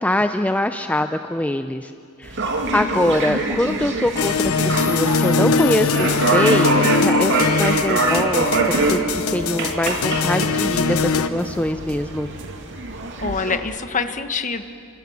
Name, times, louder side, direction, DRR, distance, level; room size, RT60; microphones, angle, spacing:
voice 1, 0.0-1.9 2.2-2.4 2.7-12.3, left 1 dB, 5° left, 8 dB, 0.6 m, -23 dB
sound 1, 2.2-13.6, right 3 dB, 60° right, 2.7 m, -24 dB
voice 2, 2.7-3.0 13.2-14.6, left 4 dB, 35° left, 9 dB, 1.3 m, -25 dB
sound 2, 4.2-11.3, left 4 dB, 90° left, 1.1 m, -21 dB
sound 3, 7.4-12.6, right 2 dB, 75° right, 1.5 m, -39 dB
28.5 x 25.5 x 7.2 m, 2.6 s
head